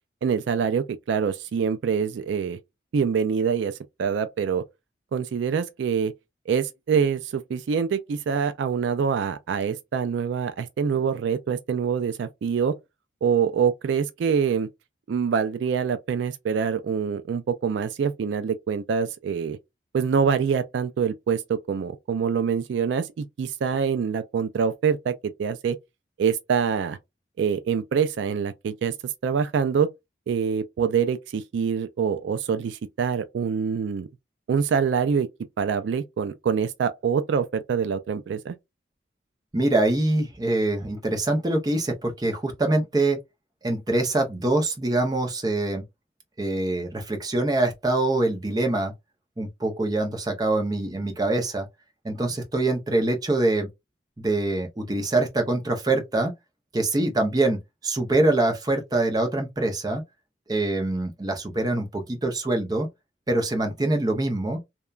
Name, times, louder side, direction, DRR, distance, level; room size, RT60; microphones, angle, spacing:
voice 1, 0.2-2.6 2.9-4.6 5.1-6.1 6.5-12.7 13.2-14.7 15.1-19.6 19.9-25.8 26.2-27.0 27.4-28.9 29.2-29.9 30.3-34.1 34.5-35.3 35.6-38.5, right 6 dB, 70° right, 0.3 m, -25 dB
voice 2, 39.5-43.2 43.6-45.8 46.4-48.9 49.4-51.7 52.0-53.7 54.2-56.3 56.7-60.0 60.5-62.9 63.3-64.6, right 2 dB, 20° right, 0.5 m, -24 dB
2.8 x 2.2 x 2.3 m
head